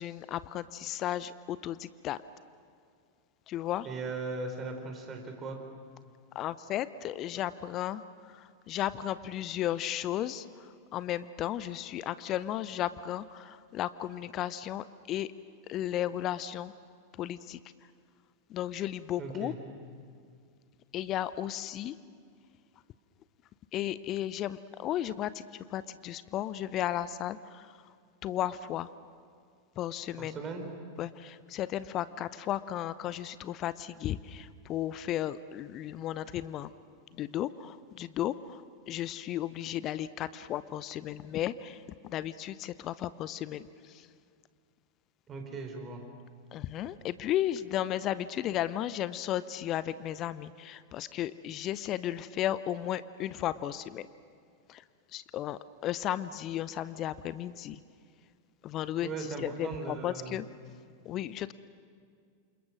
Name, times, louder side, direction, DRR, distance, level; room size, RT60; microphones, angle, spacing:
voice 1, 0.0-2.2 3.5-3.9 6.3-15.3 15.7-16.7 17.2-17.6 18.5-19.5 20.9-22.0 23.7-27.9 28.2-28.9 29.8-30.4 31.0-36.7 37.1-44.1 46.5-54.0 54.7-54.8 55.1-57.8 58.6-60.5 61.0-61.5, left 12 dB, 35° left, 16 dB, 0.7 m, -34 dB
voice 2, 3.8-5.6 19.2-19.6 30.2-30.6 45.3-46.0 59.0-60.4, right 3 dB, 25° right, 4 dB, 4.5 m, -38 dB
28.5 x 27.5 x 6.3 m, 2.2 s
figure-of-eight pair, 90°, 0 cm